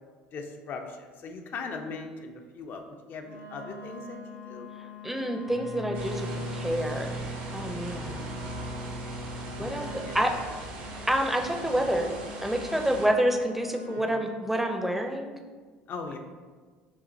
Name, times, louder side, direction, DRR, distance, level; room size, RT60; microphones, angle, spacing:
voice 1, 0.3-2.8 3.1-4.7 9.6-10.2 14.1-14.2 15.9-16.2, left 4 dB, 50° left, 4 dB, 0.5 m, -39 dB
Wind instrument woodwind instrument, 3.2-14.2, left 2 dB, 60° right, 0.5 m, -45 dB
voice 2, 5.0-6.3 6.5-7.2 7.5-8.2 9.6-10.3 11.1-12.1 12.4-15.3, right 1 dB, 5° right, 3 dB, 0.5 m, -28 dB
Bowed string instrument, 5.4-10.7, equal, 70° left, 1.5 m, -39 dB
sound 1, 5.9-13.1, right 2 dB, 80° right, 0.9 m, -41 dB
5.9 x 2.4 x 2.7 m, 1.5 s
hypercardioid pair, 70°, 4 cm